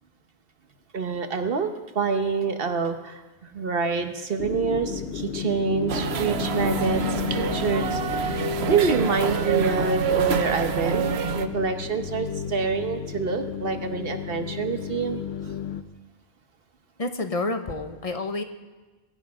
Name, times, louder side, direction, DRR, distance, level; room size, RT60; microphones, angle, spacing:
voice 1, 0.9-3.2 3.5-15.2, right 5 dB, 65° right, 7 dB, 1.3 m, -27 dB
sound 1, 4.4-15.8, left 8 dB, 80° left, 1.0 m, -33 dB
sound 2, 5.9-11.5, right 6 dB, 80° right, 1.0 m, -27 dB
voice 2, 17.0-18.4, left 2 dB, 35° left, 7 dB, 1.1 m, -29 dB
22.0 x 10.0 x 4.9 m, 1.2 s
omnidirectional pair, 1.1 m